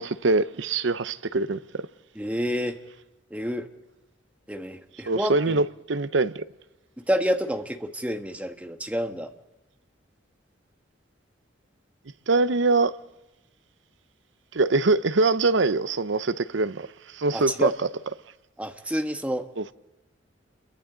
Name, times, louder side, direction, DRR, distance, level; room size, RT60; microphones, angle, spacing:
voice 1, 0.0-1.9 5.1-6.4 12.3-12.9 14.5-16.9 17.1-17.7 19.6-19.7, right 3 dB, 70° right, 0.7 m, -23 dB
voice 2, 2.1-2.8 3.3-3.7 4.5-5.6 7.1-9.3 17.3-17.7 18.6-19.4, equal, 5° right, 1.3 m, -28 dB
29.5 x 22.5 x 4.0 m
head